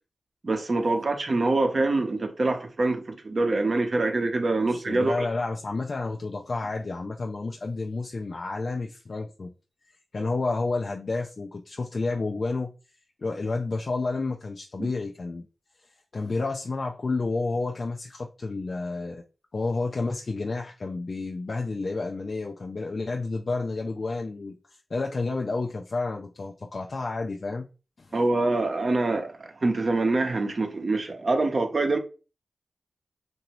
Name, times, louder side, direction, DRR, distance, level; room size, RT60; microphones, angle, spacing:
voice 1, 0.4-5.3 14.8-14.9 28.1-32.0, right 2 dB, 55° right, 0.7 m, -25 dB
voice 2, 4.7-9.5 10.1-12.7 13.2-15.4 16.1-19.2 19.5-24.6 24.9-27.7 28.0-28.2, left 3 dB, 60° left, 0.3 m, -30 dB
2.9 x 2.6 x 2.9 m
cardioid pair, 50°, 0 cm